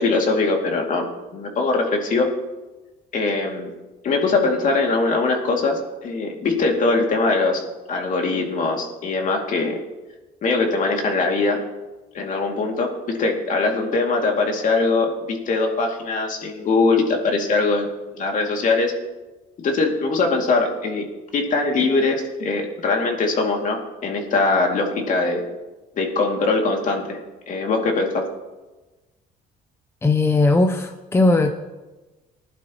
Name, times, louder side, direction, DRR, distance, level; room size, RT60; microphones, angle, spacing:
voice 1, 0.0-2.3 3.1-3.7 4.0-7.6 7.9-9.8 10.4-11.6 12.1-17.9 18.1-18.9 19.6-21.1 21.3-25.4 26.0-27.2 27.5-28.3, left 3 dB, 50° left, 1 dB, 2.5 m, -21 dB
voice 2, 30.0-31.5, left 2 dB, 15° left, 7 dB, 0.7 m, -18 dB
19.5 x 11.5 x 3.1 m, 1.1 s
cardioid pair, 110°, 17 cm